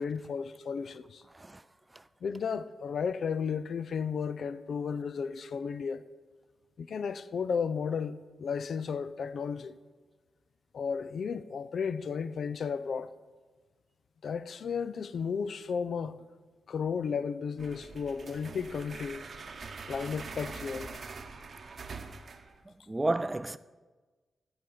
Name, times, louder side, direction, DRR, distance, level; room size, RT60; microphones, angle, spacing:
voice 1, 0.0-1.2 2.2-6.0 6.8-9.8 10.7-13.1 14.2-16.2 16.7-19.2 19.9-21.0, left 6 dB, 70° left, 0.4 m, -34 dB
sound 1, 17.6-22.6, right 4 dB, 60° right, 0.8 m, -44 dB
voice 2, 22.7-23.6, right 2 dB, 20° right, 0.3 m, -32 dB
11.5 x 5.0 x 5.8 m
cardioid pair, 65°, 0 cm